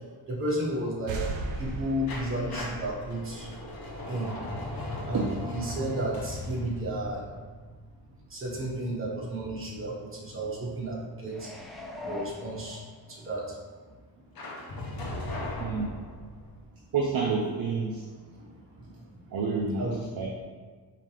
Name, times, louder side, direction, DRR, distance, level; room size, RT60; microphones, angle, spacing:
voice 1, 0.3-1.2 1.5-3.5 4.1-4.3 5.1-7.3 8.3-11.5 12.0-13.6 18.2-19.1 19.8-20.0, right 1 dB, 30° right, -4 dB, 1.3 m, -33 dB
sound 1, 1.1-4.6, right 2 dB, 90° right, 0.7 m, -37 dB
sound 2, 2.1-8.9 14.4-16.6, left 1 dB, 50° left, 0.9 m, -38 dB
sound 3, 11.3-13.4 13.8-13.9, left 3 dB, ahead, 0.5 m, -41 dB
voice 2, 15.4-15.9 16.9-18.0 19.3-19.9 20.2-20.3, right 4 dB, 50° right, -1 dB, 0.6 m, -29 dB
5.0 x 2.9 x 3.2 m, 1.5 s
cardioid pair, 80°, 45 cm